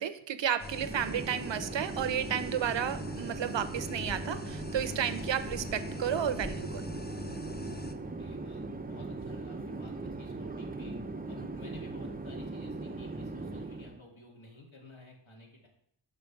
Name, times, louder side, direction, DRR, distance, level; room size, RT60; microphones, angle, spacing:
voice 1, 0.0-6.8, right 9 dB, 60° right, 12 dB, 0.6 m, -32 dB
sound 1, 0.6-7.9, left 4 dB, 20° left, 0.6 m, -44 dB
Chatter / Fixed-wing aircraft airplane, 0.6-14.0, right 3 dB, 20° right, 0.5 m, -39 dB
voice 2, 8.2-8.6 8.9-10.9 11.3-15.7, left 2 dB, 65° left, -1 dB, 2.1 m, -53 dB
5.8 x 5.1 x 4.6 m, 0.70 s
cardioid pair, 45°, 50 cm